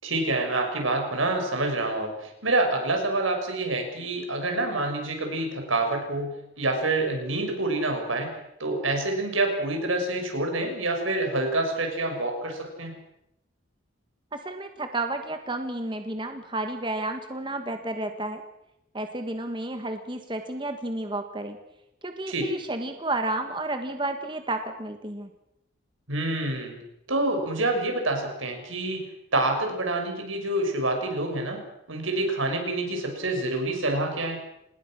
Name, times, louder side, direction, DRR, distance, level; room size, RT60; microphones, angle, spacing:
voice 1, 0.0-13.0 22.3-22.4 26.1-26.8 27.1-29.1 29.3-31.6 31.9-34.4, right 2 dB, 85° right, 4 dB, 6.4 m, -27 dB
voice 2, 14.3-18.4 18.9-21.6 22.0-25.3, right 2 dB, 25° right, 6 dB, 1.7 m, -31 dB
28.0 x 20.0 x 6.4 m, 0.83 s
head